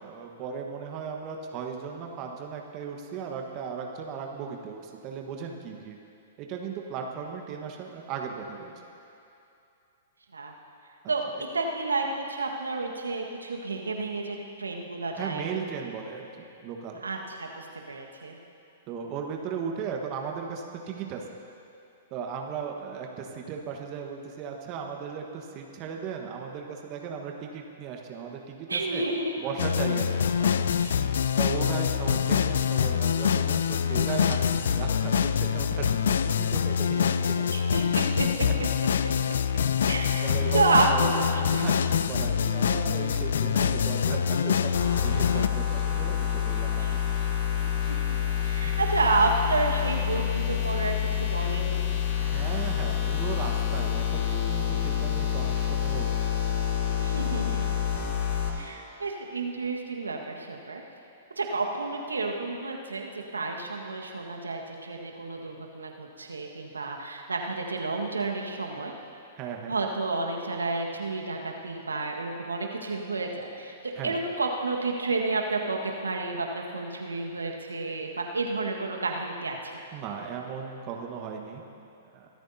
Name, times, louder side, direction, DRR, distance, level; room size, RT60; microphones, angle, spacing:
voice 1, 0.0-6.0 6.4-8.7 11.3-11.4 15.1-17.0 18.9-21.3 22.1-29.1 29.4-30.8 31.4-37.5 40.2-47.0 48.6-48.7 52.2-56.1 69.4-69.7 74.0-74.2 79.9-81.6 82.1-82.3, right 6 dB, 35° right, 2 dB, 1.4 m, -36 dB
voice 2, 11.5-15.5 17.0-18.4 28.7-29.4 30.8-31.0 37.5-38.5 39.0-39.1 39.9-40.3 40.5-40.9 41.3-41.6 46.8-47.0 47.9-48.0 48.4-51.9 57.0-57.8 58.5-60.8 61.4-68.9 69.7-79.7, right 3 dB, 85° right, 1 dB, 1.6 m, -30 dB
sound 1, 29.6-45.5, left 7 dB, 65° left, 0.4 m, -25 dB
sound 2, 44.7-58.5, left 10 dB, 50° left, 2.3 m, -28 dB
24.5 x 13.5 x 2.8 m, 2.7 s
figure-of-eight pair, 110°, 0 cm